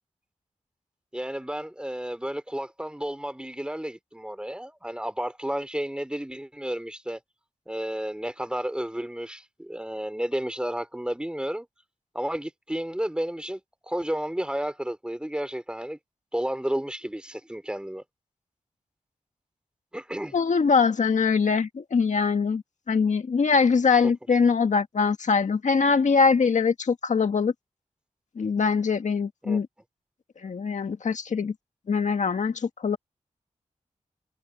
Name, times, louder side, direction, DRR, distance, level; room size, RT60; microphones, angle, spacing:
voice 1, 1.1-7.2 7.7-11.7 12.1-16.0 16.3-18.0 19.9-20.3 29.4-29.6, right 1 dB, 5° right, 3.5 m, -32 dB
voice 2, 20.3-27.5 28.3-29.7 30.4-31.5 31.9-33.0, left 5 dB, 70° left, 1.7 m, -23 dB
wide cardioid pair, 80°, 13 cm